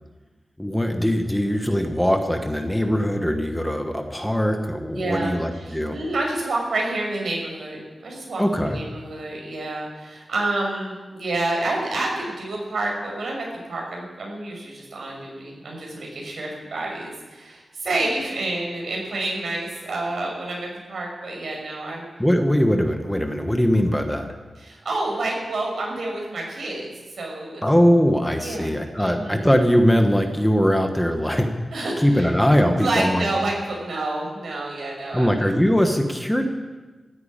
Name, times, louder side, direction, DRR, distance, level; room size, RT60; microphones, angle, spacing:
voice 1, 0.6-6.0 8.4-8.8 22.2-24.3 27.6-31.5 32.0-33.3 35.1-36.5, equal, 5° left, 5 dB, 1.2 m, -21 dB
voice 2, 4.9-22.1 24.6-27.8 28.4-28.7 29.0-29.4 31.7-32.3 32.8-35.5, right 2 dB, 80° right, -1 dB, 5.9 m, -29 dB
15.0 x 9.6 x 8.7 m, 1.3 s
wide cardioid pair, 145°, 0 cm